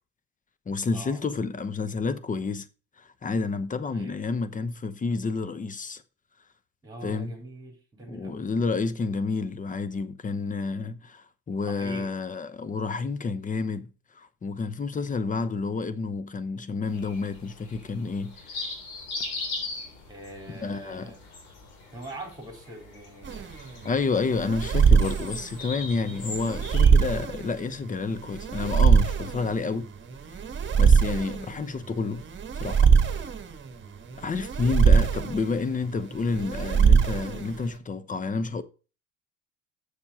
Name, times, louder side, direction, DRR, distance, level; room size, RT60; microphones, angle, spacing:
voice 1, 0.7-2.7 3.0-6.0 7.0-7.3 8.1-13.9 14.1-18.6 20.6-21.1 23.6-29.9 30.8-32.2 32.6-32.9 33.2-33.3 34.2-38.6, left 4 dB, 20° left, 0.8 m, -30 dB
voice 2, 6.8-8.4 11.6-12.1 20.1-21.2 21.9-23.5 31.0-31.3, right 2 dB, 10° right, 4.0 m, -43 dB
sound 1, 16.9-26.9, left 3 dB, 70° left, 3.6 m, -40 dB
sound 2, 23.2-37.8, right 6 dB, 30° right, 1.5 m, -23 dB
7.1 x 6.7 x 5.6 m
hypercardioid pair, 70°, 37 cm